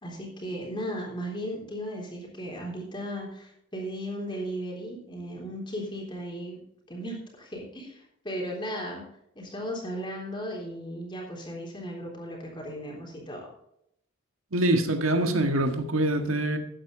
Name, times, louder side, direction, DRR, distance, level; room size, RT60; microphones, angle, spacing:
voice 1, 0.0-6.6 6.9-9.0 9.4-13.5, equal, 25° left, 0 dB, 3.5 m, -36 dB
voice 2, 14.5-16.6, right 1 dB, 90° right, 5 dB, 1.7 m, -24 dB
13.0 x 9.5 x 4.0 m, 0.74 s
head